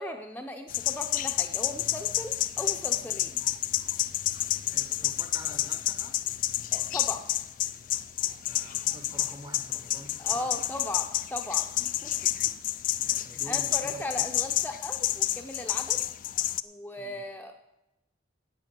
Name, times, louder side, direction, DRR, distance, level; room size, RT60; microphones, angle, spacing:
voice 1, 0.0-3.4 6.7-7.3 10.2-12.1 13.5-16.0 16.6-17.5, left 1 dB, 10° left, 0.8 m, -37 dB
sound 1, 0.7-16.6, left 14 dB, 45° left, 0.4 m, -29 dB
voice 2, 4.6-6.3 8.4-10.7 13.0-14.8 17.0-17.3, equal, 20° right, 1.1 m, -48 dB
10.5 x 8.9 x 7.7 m
head